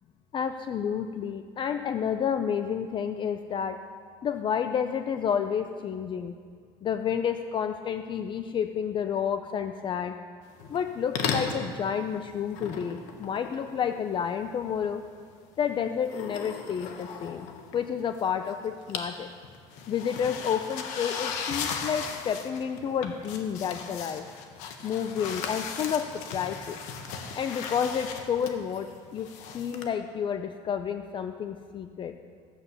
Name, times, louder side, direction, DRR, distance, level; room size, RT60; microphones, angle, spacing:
voice 1, 0.3-3.8 4.2-6.3 6.8-10.2 10.7-15.0 15.6-17.5 17.7-19.3 19.9-24.2 24.8-26.8 27.3-29.3 29.5-32.1, left 7 dB, 40° left, 8 dB, 0.6 m, -30 dB
sound 1, 10.6-10.9 11.2-11.7 12.5-14.2 16.0-18.2 18.5-19.2 19.4-29.9, left 6 dB, 80° left, 1.4 m, -37 dB
13.5 x 8.5 x 6.9 m, 2.1 s
cardioid pair, 110°, 12 cm